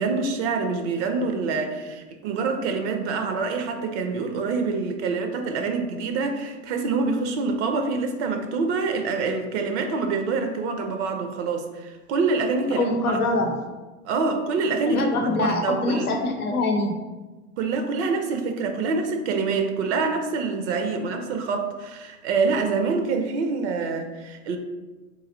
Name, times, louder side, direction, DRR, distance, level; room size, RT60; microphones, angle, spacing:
voice 1, 0.0-13.2 14.0-16.1 17.6-24.6, right 4 dB, 55° right, 5 dB, 0.5 m, -26 dB
voice 2, 12.8-13.5 14.9-16.9, left 2 dB, 90° left, 3 dB, 0.7 m, -24 dB
3.1 x 2.6 x 3.7 m, 1.2 s
hypercardioid pair, 85°, 43 cm